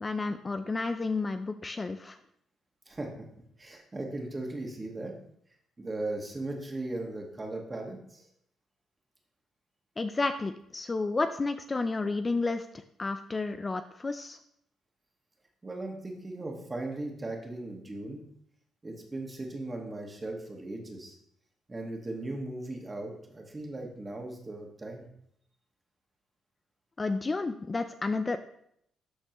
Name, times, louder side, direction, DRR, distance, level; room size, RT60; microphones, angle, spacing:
voice 1, 0.0-2.2 10.0-12.7 13.0-14.4 27.0-28.4, left 3 dB, 25° left, 9 dB, 0.4 m, -31 dB
voice 2, 2.9-5.1 5.8-8.2 15.6-18.2 18.8-21.1 21.7-25.0, right 2 dB, 25° right, 1 dB, 1.7 m, -38 dB
12.0 x 4.3 x 3.0 m, 0.71 s
cardioid pair, 90°, 0 cm